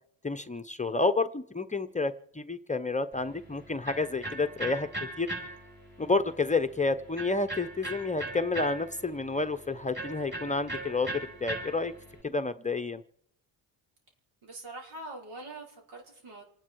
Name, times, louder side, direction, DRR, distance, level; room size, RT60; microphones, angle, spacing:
voice 1, 0.2-4.9 5.2-5.3 6.0-11.9 12.2-13.0, left 3 dB, 15° left, 9 dB, 0.7 m, -30 dB
Electric guitar, 3.1-12.2, right 1 dB, 20° right, 6.5 m, -40 dB
voice 2, 14.4-16.4, right 2 dB, 80° right, 1 dB, 5.0 m, -43 dB
28.5 x 10.0 x 4.6 m, 0.69 s
cardioid pair, 100°, 48 cm